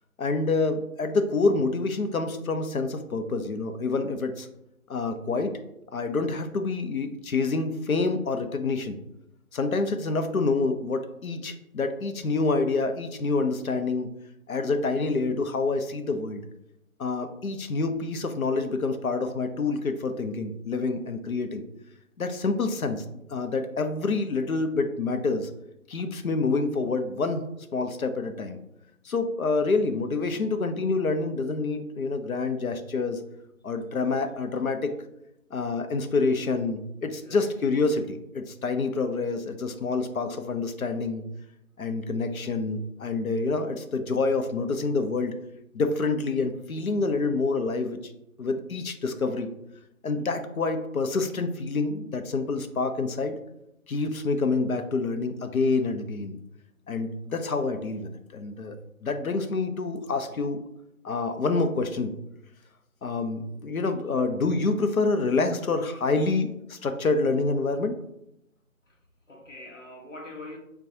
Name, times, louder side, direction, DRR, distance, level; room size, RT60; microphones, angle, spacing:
voice 1, 0.2-4.5 4.9-5.5 5.9-9.0 9.5-14.1 14.5-16.4 17.0-21.6 22.2-23.0 23.3-25.5 25.9-27.4 27.7-28.6 29.0-33.2 33.6-34.9 35.5-41.2 41.8-45.4 45.7-48.1 48.4-49.5 50.0-53.4 53.9-56.4 56.9-58.8 59.0-60.6 61.0-62.1 63.0-67.9, left 3 dB, 75° left, 0.6 m, -27 dB
voice 2, 37.1-37.5 68.9-69.0 69.3-70.6, left 2 dB, 60° left, 1.0 m, -43 dB
5.8 x 2.3 x 2.6 m
figure-of-eight pair, 180°, 43 cm